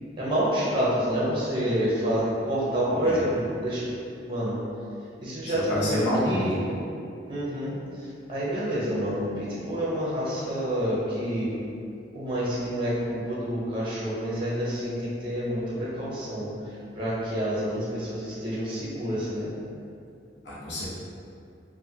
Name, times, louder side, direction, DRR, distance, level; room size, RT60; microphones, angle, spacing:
voice 1, 0.1-3.9 4.3-4.6 5.2-6.7 7.3-11.5 12.1-19.5, equal, 25° right, -7 dB, 0.6 m, -28 dB
voice 2, 5.7-6.5 20.4-20.9, equal, 65° left, -8 dB, 0.8 m, -27 dB
3.4 x 2.1 x 2.7 m, 2.5 s
head